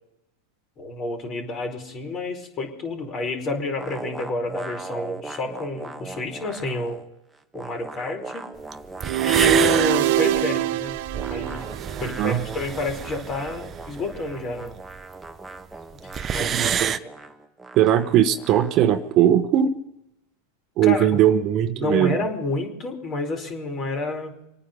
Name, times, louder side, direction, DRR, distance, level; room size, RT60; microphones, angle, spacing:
voice 1, 0.8-7.0 7.5-8.5 9.2-10.9 11.3-11.7 12.0-14.8 15.9-17.1 20.8-21.1 21.8-24.3, left 3 dB, 35° left, 3 dB, 4.7 m, -29 dB
sound 1, 3.8-7.1 7.3-10.6 11.1-19.2, right 2 dB, 5° right, 1.2 m, -39 dB
sound 2, 8.7-8.8 9.0-15.0 15.3-15.4 15.6-15.7 15.9-17.0, right 8 dB, 30° right, 0.7 m, -29 dB
sound 3, 9.0-12.3, right 16 dB, 60° right, 0.9 m, -23 dB
voice 2, 16.4-16.9 17.7-19.7 20.8-22.2, right 10 dB, 45° right, 9 dB, 1.2 m, -19 dB
26.5 x 9.4 x 5.3 m, 0.88 s
hypercardioid pair, 110°, 0 cm